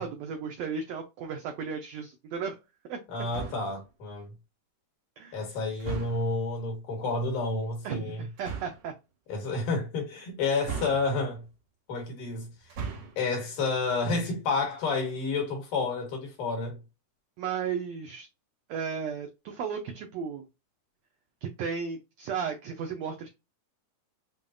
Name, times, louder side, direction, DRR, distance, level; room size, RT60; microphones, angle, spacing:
voice 1, 0.0-2.6 2.9-3.0 5.2-5.4 7.8-8.9 17.4-18.3 18.7-20.5 21.4-23.3, right 6 dB, 85° right, 1.5 m, -34 dB
voice 2, 3.1-4.3 5.3-8.2 9.3-11.4 11.9-12.5 13.2-16.8, left 3 dB, 75° left, 3.3 m, -30 dB
sound 1, 3.3-3.8 5.8-6.4 8.4-8.9 10.6-11.4 12.6-13.3, right 6 dB, 65° right, 2.2 m, -37 dB
6.8 x 2.3 x 2.5 m
omnidirectional pair, 3.8 m